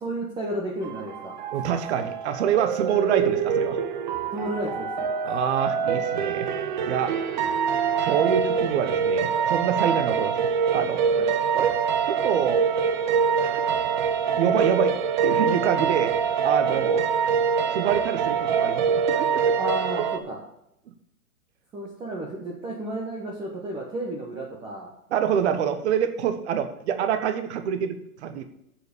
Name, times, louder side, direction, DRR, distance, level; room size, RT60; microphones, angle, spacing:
voice 1, 0.0-1.3 4.3-5.1 9.8-10.0 11.1-11.3 16.7-16.8 19.6-20.4 21.7-24.9, right 1 dB, 10° right, -2 dB, 1.0 m, -32 dB
sound 1, 0.8-20.2, right 6 dB, 30° right, 0.6 m, -25 dB
voice 2, 1.5-3.8 5.2-6.5 6.9-7.1 8.0-11.0 11.5-11.8 12.1-12.7 13.4-13.6 14.4-15.0 15.2-17.0 17.7-19.5 25.1-28.4, right 8 dB, 50° right, 9 dB, 1.3 m, -26 dB
9.3 x 7.4 x 5.3 m, 0.80 s
hypercardioid pair, 155°, 45 cm